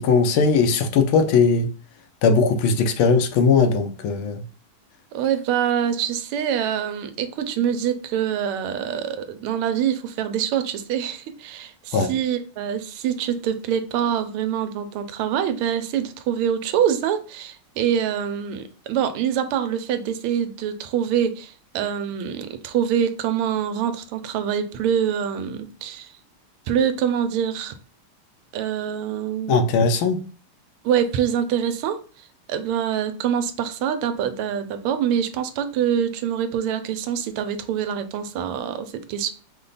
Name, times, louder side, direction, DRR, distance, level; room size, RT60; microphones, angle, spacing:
voice 1, 0.0-1.7 2.2-4.4 11.9-12.1 29.5-30.2, left 4 dB, 75° left, 1.4 m, -19 dB
voice 2, 5.1-26.1 26.7-27.7 28.5-29.6 30.8-32.0 32.5-39.3, right 9 dB, 85° right, 1.5 m, -25 dB
5.2 x 2.2 x 3.9 m
omnidirectional pair, 2.4 m